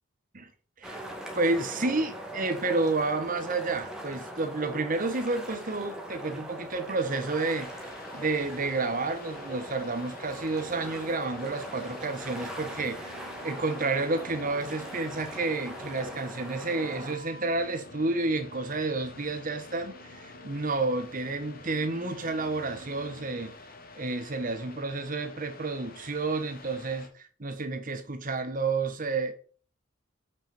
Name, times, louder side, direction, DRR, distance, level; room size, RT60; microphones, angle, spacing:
sound 1, 0.8-17.2, equal, 5° right, 2.0 m, -41 dB
voice 1, 1.3-13.2 13.4-23.5 23.9-29.3, right 3 dB, 45° right, 1.2 m, -30 dB
sound 2, 7.4-27.1, left 3 dB, 50° left, 1.8 m, -49 dB
sound 3, 10.2-23.5, equal, 80° right, 1.8 m, -51 dB
8.3 x 6.1 x 4.2 m
head